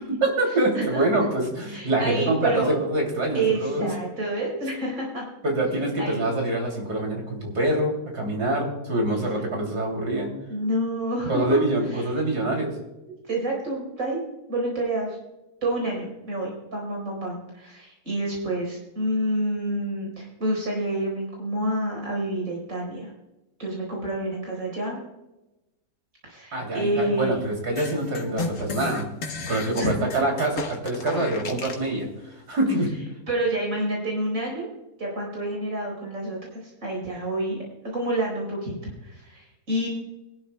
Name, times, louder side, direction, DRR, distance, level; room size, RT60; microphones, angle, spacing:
voice 1, 0.2-3.9 5.4-10.3 11.3-12.7 26.5-29.1 29.5-32.1 32.5-32.9, right 1 dB, 90° right, 1 dB, 3.4 m, -25 dB
voice 2, 0.7-1.1 1.7-2.7 3.3-5.3 6.0-6.4 9.1-9.2 10.5-11.6 11.9-12.2 13.3-14.2 14.5-15.2 15.6-23.1 23.6-25.0 26.2-27.3 29.8-30.2 33.3-34.7 35.0-39.9, right 1 dB, 60° right, -2 dB, 4.6 m, -28 dB
sound 1, 27.8-31.9, left 3 dB, 65° left, 1.7 m, -33 dB
22.0 x 12.0 x 2.2 m, 0.99 s
omnidirectional pair, 1.6 m